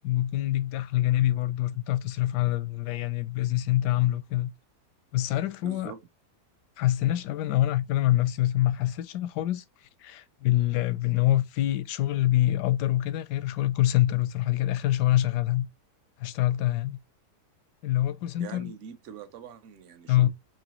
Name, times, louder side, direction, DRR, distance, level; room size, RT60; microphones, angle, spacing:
voice 1, 0.0-4.5 5.1-5.9 6.8-15.7 16.2-17.0 17.8-18.7 20.1-20.3, left 14 dB, 85° left, 1.2 m, -25 dB
voice 2, 5.6-6.0 18.4-20.3, right 8 dB, 55° right, 1.0 m, -43 dB
3.9 x 3.0 x 2.9 m
omnidirectional pair, 1.8 m